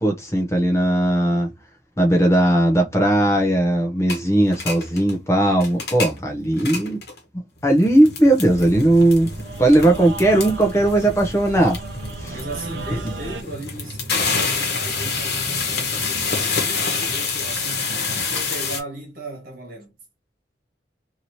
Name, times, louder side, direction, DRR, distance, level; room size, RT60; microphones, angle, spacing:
voice 1, 0.0-1.5 2.0-7.0 7.3-9.3 9.6-11.8 12.2-12.3, right 1 dB, 15° left, 0.6 m, -18 dB
sound 1, 4.1-4.2 4.5-5.1 5.5-6.2 6.5-7.2 7.7-18.8, left 4 dB, 60° left, 1.1 m, -27 dB
sound 2, 8.4-13.4, right 2 dB, 90° right, 0.6 m, -35 dB
voice 2, 12.3-19.9, right 1 dB, 50° right, 1.5 m, -36 dB
3.0 x 2.8 x 2.7 m
head